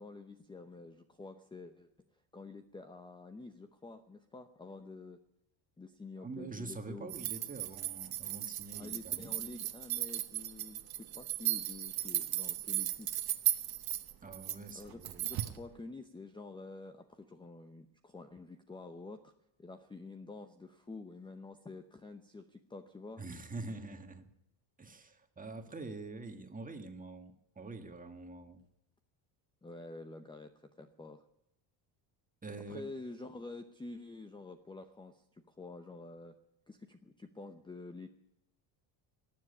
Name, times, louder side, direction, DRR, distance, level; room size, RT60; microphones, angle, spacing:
voice 1, 0.0-1.9 2.3-5.2 5.8-7.1 8.7-13.1 14.7-19.3 19.6-23.2 29.6-31.2 32.7-36.4 36.7-38.1, left 3 dB, 10° left, 8 dB, 0.8 m, -48 dB
voice 2, 6.2-9.4 14.2-15.3 23.2-24.3 24.8-28.6 32.4-32.8, right 3 dB, 15° right, 6 dB, 1.7 m, -45 dB
sound 1, 7.1-15.6, right 13 dB, 50° right, 1.4 m, -36 dB
19.0 x 7.6 x 9.7 m, 0.84 s
cardioid pair, 120°, 48 cm